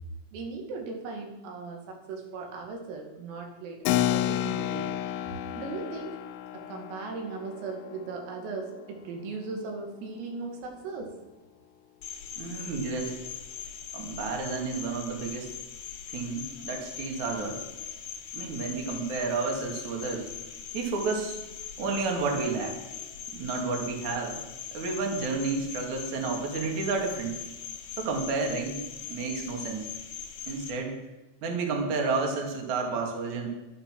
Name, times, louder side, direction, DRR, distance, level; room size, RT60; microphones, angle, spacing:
voice 1, 0.3-4.9 5.5-6.2 6.5-11.1, right 4 dB, 80° right, 2 dB, 4.7 m, -38 dB
Keyboard (musical), 3.9-9.9, left 12 dB, 80° left, 3.0 m, -32 dB
Cricket, 12.0-30.7, left 8 dB, 65° left, 3.0 m, -41 dB
voice 2, 12.4-13.2 13.9-15.5 16.1-17.6 18.3-20.3 20.7-21.4 21.8-22.8 23.3-24.4 24.7-27.4 28.0-28.8 29.1-29.9 30.5-31.0 31.4-33.5, right 4 dB, 45° right, 1 dB, 2.9 m, -31 dB
12.5 x 12.0 x 6.1 m, 1.1 s
omnidirectional pair, 6.0 m